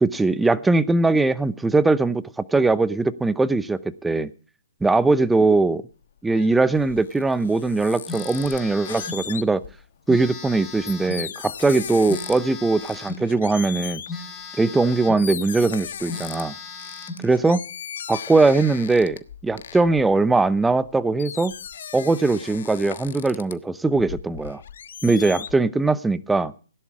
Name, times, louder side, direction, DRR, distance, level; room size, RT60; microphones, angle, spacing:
voice 1, 0.0-4.3 4.8-5.8 6.2-9.6 10.1-14.0 14.6-16.5 17.2-17.6 18.1-21.5 21.9-24.6 25.0-26.5, right 3 dB, 5° right, 17 dB, 0.7 m, -20 dB
sound 1, 5.9-9.9 10.4-12.5 12.8-14.2 14.8-14.9 15.2-16.4 16.8-20.9 21.2-23.5 23.9-25.6, left 8 dB, 60° left, 1.2 m, -37 dB
Telephone, 8.1-9.2 10.1-11.3 12.1-13.3 14.1-15.3 15.7-15.8 16.1-17.3, left 3 dB, 10° left, 4.7 m, -36 dB
17.0 x 11.0 x 4.8 m, 0.39 s
hypercardioid pair, 150°, 0 cm